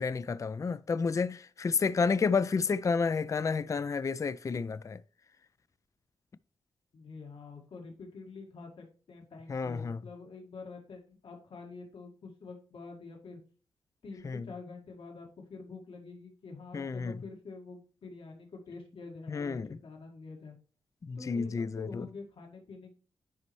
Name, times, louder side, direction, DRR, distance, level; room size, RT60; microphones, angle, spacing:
voice 1, 0.0-5.0 9.5-10.0 14.2-14.5 16.7-17.1 19.3-19.7 21.0-22.1, left 5 dB, 35° left, 0.4 m, -30 dB
voice 2, 6.9-13.4 14.0-20.6 21.2-22.9, left 4 dB, 75° left, 1.9 m, -47 dB
10.5 x 4.1 x 3.1 m
cardioid pair, 80°, 9 cm